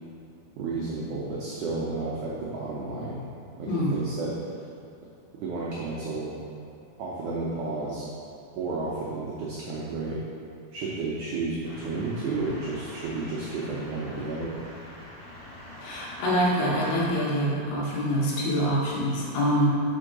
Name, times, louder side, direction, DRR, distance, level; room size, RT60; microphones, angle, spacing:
voice 1, 0.6-3.3 3.6-4.3 5.3-6.4 7.0-8.1 8.6-10.2 10.7-14.5, right 3 dB, 85° right, -6 dB, 1.7 m, -32 dB
voice 2, 3.7-4.0 15.8-19.7, equal, 80° left, -5 dB, 3.1 m, -25 dB
sound 1, 11.6-17.1, left 1 dB, 45° left, 2.2 m, -45 dB
5.6 x 4.5 x 5.2 m, 2.6 s
omnidirectional pair, 4.5 m